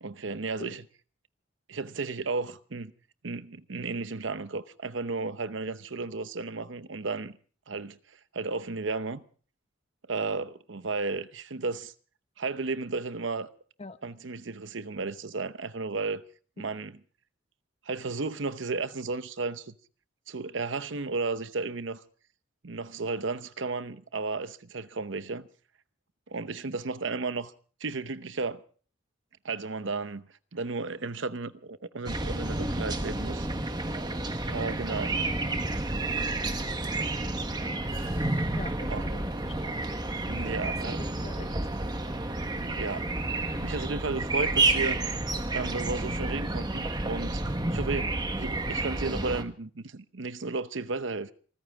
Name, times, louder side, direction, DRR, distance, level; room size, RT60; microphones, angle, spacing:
voice 1, 0.0-0.8 1.7-2.9 3.2-7.4 7.7-8.0 8.3-9.2 10.1-11.9 12.4-13.5 14.0-16.2 16.6-17.0 17.9-19.8 20.3-22.0 22.6-25.5 26.3-27.5 27.8-28.6 29.4-33.5 34.5-35.3 38.9-39.0 40.3-41.0 42.6-43.1 43.6-45.0 45.5-47.4 47.7-51.3, right 3 dB, 70° right, 0.8 m, -33 dB
sound 1, 32.1-49.4, right 2 dB, 20° right, 1.2 m, -30 dB
sound 2, 34.9-43.9, left 2 dB, 80° left, 5.6 m, -54 dB
voice 2, 38.6-39.8 40.6-41.5, left 2 dB, 30° left, 0.9 m, -43 dB
26.5 x 14.5 x 3.6 m
head